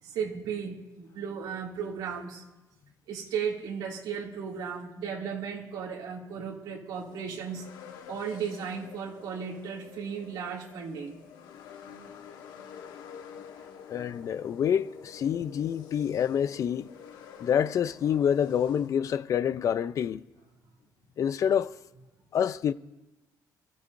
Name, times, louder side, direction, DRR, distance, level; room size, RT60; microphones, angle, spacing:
voice 1, 0.0-2.4 3.1-7.7 8.1-11.2, right 6 dB, 75° right, 2.6 m, -35 dB
sound 1, 6.9-18.9, left 7 dB, 80° left, 1.4 m, -48 dB
voice 2, 13.9-16.9 17.4-20.2 21.2-21.7 22.3-22.7, left 8 dB, 50° left, 0.6 m, -27 dB
27.5 x 14.5 x 2.7 m
cardioid pair, 125°, 7 cm